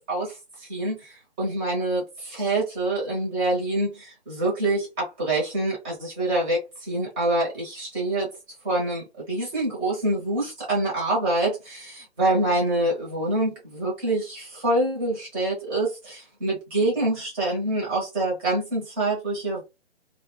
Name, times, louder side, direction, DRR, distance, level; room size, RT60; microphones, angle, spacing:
voice 1, 0.1-8.3 8.6-19.6, right 2 dB, 10° right, 0.6 m, -26 dB
2.1 x 2.1 x 3.0 m
figure-of-eight pair, 140°, 34 cm